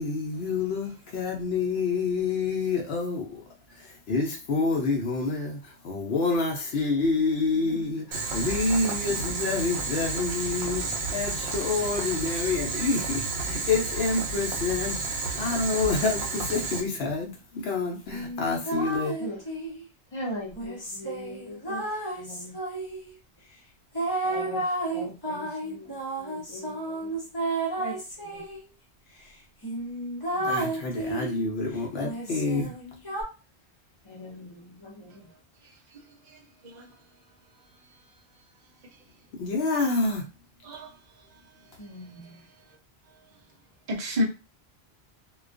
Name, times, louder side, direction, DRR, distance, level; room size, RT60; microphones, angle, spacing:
voice 1, 0.0-3.4 3.7-19.2 30.4-32.7 39.3-40.3, left 4 dB, 70° left, 0.8 m, -28 dB
Boiling, 8.1-16.8, right 3 dB, 70° right, 0.9 m, -31 dB
sound 1, 18.1-19.8 20.5-23.1 23.9-28.6 29.2-29.3 29.6-31.4 32.0-33.2, right 2 dB, 25° left, 0.8 m, -32 dB
voice 2, 20.1-21.9 22.1-22.5 24.2-24.6 24.9-27.2 27.8-28.4 30.3-30.5 34.0-35.3 41.8-42.4, equal, 40° left, 0.4 m, -40 dB
voice 3, 43.9-44.2, left 1 dB, 45° right, 0.6 m, -28 dB
2.3 x 2.2 x 2.4 m
omnidirectional pair, 1.2 m